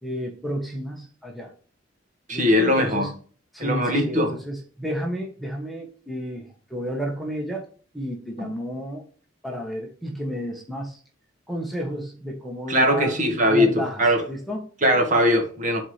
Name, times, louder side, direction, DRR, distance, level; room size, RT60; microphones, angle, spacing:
voice 1, 0.0-1.5 2.3-3.1 3.5-7.7 7.9-9.0 9.4-11.0 11.5-13.2 13.5-14.7, equal, ahead, 1.1 m, -32 dB
voice 2, 2.3-3.1 3.6-4.3 8.4-8.5 12.7-14.2 14.8-15.8, equal, 40° right, 1.7 m, -20 dB
12.0 x 4.2 x 3.3 m
head